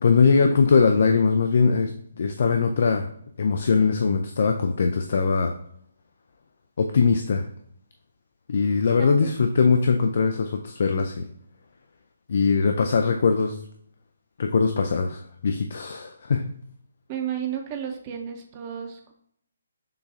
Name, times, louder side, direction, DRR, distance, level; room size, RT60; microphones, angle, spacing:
voice 1, 0.0-1.9 2.2-3.1 3.4-5.5 6.8-7.4 8.5-11.3 12.3-13.6 14.4-16.4, left 5 dB, 50° left, 5 dB, 0.3 m, -21 dB
voice 2, 9.0-9.3 17.1-19.1, right 9 dB, 25° right, 3 dB, 0.7 m, -32 dB
6.7 x 2.3 x 2.6 m, 0.68 s
figure-of-eight pair, 140°, 0 cm